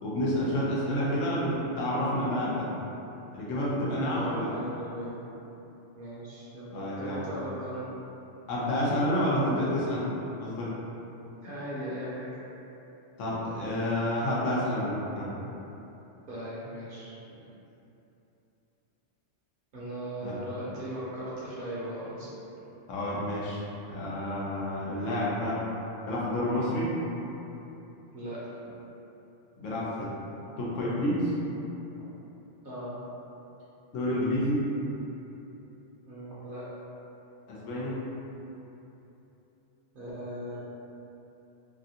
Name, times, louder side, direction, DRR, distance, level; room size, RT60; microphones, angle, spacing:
voice 1, 0.0-2.7 3.3-4.5 6.7-7.2 8.5-10.0 10.4-10.7 13.2-15.3 20.2-20.3 22.9-23.6 23.9-25.6 26.1-26.9 29.6-30.1 30.6-31.3 33.9-34.6 37.5-37.9, left 1 dB, 85° left, -7 dB, 1.1 m, -29 dB
voice 2, 4.1-5.2 5.9-7.9 11.4-12.3 15.2-15.4 16.3-17.4 19.7-22.3 28.1-28.4 28.7-28.8 32.6-33.0 36.0-36.6 39.9-40.6, right 1 dB, 55° right, -8 dB, 0.7 m, -38 dB
2.8 x 2.5 x 2.7 m, 3.0 s
omnidirectional pair, 1.3 m